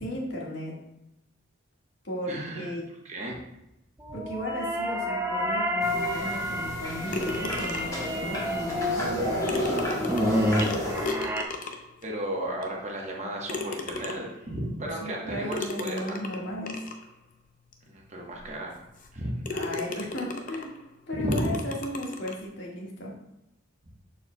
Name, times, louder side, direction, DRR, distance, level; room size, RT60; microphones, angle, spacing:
voice 1, 0.0-0.7 2.0-2.8 4.1-9.7 15.0-16.8 19.5-20.8 21.1-23.1, left 1 dB, 65° left, -3 dB, 1.7 m, -35 dB
voice 2, 2.3-2.7 3.0-3.4 12.0-16.2 17.9-18.9 19.1-19.5 21.1-21.5, right 1 dB, 35° right, -1 dB, 1.1 m, -33 dB
sound 1, 4.0-11.4, equal, 15° right, 0.5 m, -30 dB
sound 2, 5.8-11.1, equal, 15° left, 1.1 m, -31 dB
sound 3, 7.1-8.1 9.1-9.2 9.5-12.0 12.6-12.7 13.5-14.4 15.5-17.0 17.7-17.8 18.3-18.4 19.0-19.2 19.4-20.8 21.3-22.4, left 3 dB, 40° left, 0.6 m, -35 dB
7.1 x 6.4 x 2.2 m, 0.89 s
head